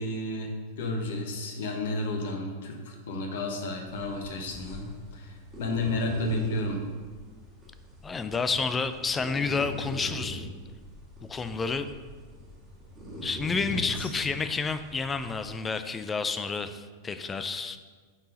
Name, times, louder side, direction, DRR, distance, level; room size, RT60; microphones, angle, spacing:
voice 1, 0.0-6.9 13.6-14.1, left 2 dB, 55° left, 3 dB, 1.1 m, -32 dB
sound 1, 3.9-15.5, equal, 15° right, 2.3 m, -42 dB
voice 2, 8.0-10.5 11.3-11.9 13.2-17.8, left 4 dB, 15° left, 10 dB, 0.4 m, -30 dB
8.7 x 4.6 x 3.8 m, 1.5 s
figure-of-eight pair, 90°, 0 cm